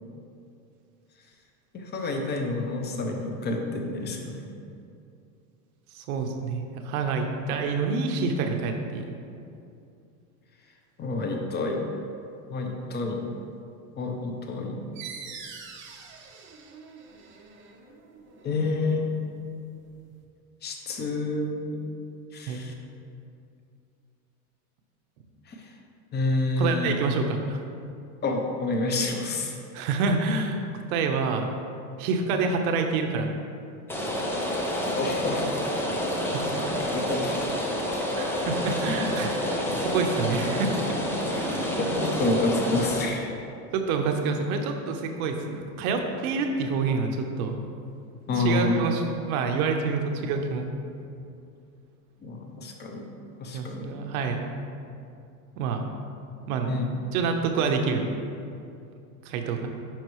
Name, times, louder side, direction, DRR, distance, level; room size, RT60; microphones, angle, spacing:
voice 1, 1.7-4.5 11.0-11.8 12.5-13.2 14.0-14.8 18.4-19.2 20.6-21.8 22.3-22.7 25.5-25.7 26.1-26.9 28.2-29.6 34.9-35.5 36.9-37.4 39.7-39.8 41.8-43.3 48.3-48.7 52.2-53.1 53.4-53.9 56.7-56.8, left 2 dB, 20° left, 2 dB, 0.8 m, -28 dB
voice 2, 5.9-9.1 22.5-22.6 26.6-27.6 29.7-30.6 30.9-31.5 32.0-33.3 36.2-36.5 38.2-40.7 41.3-41.7 43.7-47.6 48.4-50.7 53.5-54.4 55.6-55.9 56.5-56.7 57.1-58.1 59.2-59.7, right 4 dB, 65° right, 4 dB, 1.0 m, -27 dB
sound 1, 15.0-20.2, right 5 dB, 25° right, 0.8 m, -45 dB
Rain, 33.9-43.0, equal, 5° left, 0.4 m, -28 dB
10.5 x 5.4 x 3.1 m, 2.5 s
supercardioid pair, 140°, 45 cm